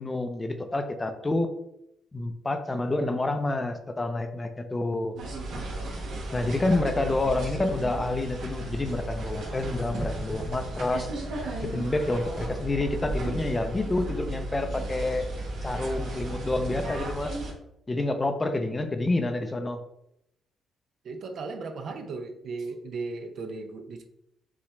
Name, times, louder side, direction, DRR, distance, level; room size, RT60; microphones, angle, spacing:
voice 1, 0.0-1.5 2.1-5.2 6.3-11.1 11.6-15.3 15.6-17.4 17.9-19.8, left 2 dB, 20° left, 7 dB, 0.6 m, -28 dB
sound 1, 5.2-17.5, right 2 dB, 80° right, 1.4 m, -34 dB
voice 2, 21.0-24.1, right 3 dB, 60° right, 6 dB, 0.6 m, -36 dB
7.1 x 2.4 x 3.1 m, 0.79 s
cardioid pair, 90°, 0 cm